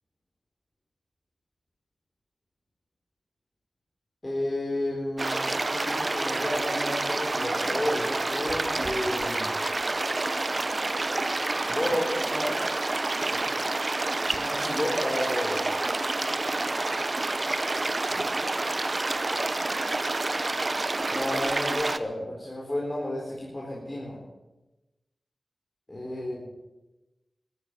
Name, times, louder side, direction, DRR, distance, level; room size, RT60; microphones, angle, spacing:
voice 1, 4.2-9.6 11.7-12.5 13.3-13.4 14.4-15.7 18.1-18.2 21.1-24.2 25.9-26.5, left 1 dB, 30° left, -4 dB, 4.1 m, -32 dB
sound 1, 5.2-22.0, right 2 dB, 45° right, 0.8 m, -28 dB
13.5 x 9.9 x 8.6 m, 1.1 s
wide cardioid pair, 55°, 0 cm